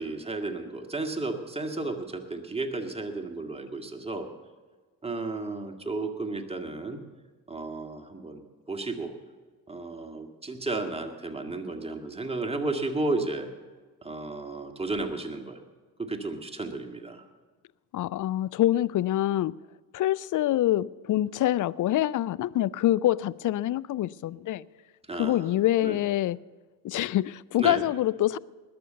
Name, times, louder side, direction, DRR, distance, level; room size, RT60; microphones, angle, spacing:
voice 1, 0.0-4.3 5.0-7.0 7.5-8.4 8.7-9.1 9.7-13.5 14.0-15.6 16.0-17.2 25.1-25.5 25.8-26.0 27.6-27.8, right 2 dB, 10° right, 2.1 m, -33 dB
voice 2, 17.9-19.6 19.9-24.6 25.1-26.4 26.8-28.4, left 13 dB, 40° left, 0.5 m, -25 dB
20.5 x 6.9 x 7.0 m
hypercardioid pair, 40°, 50 cm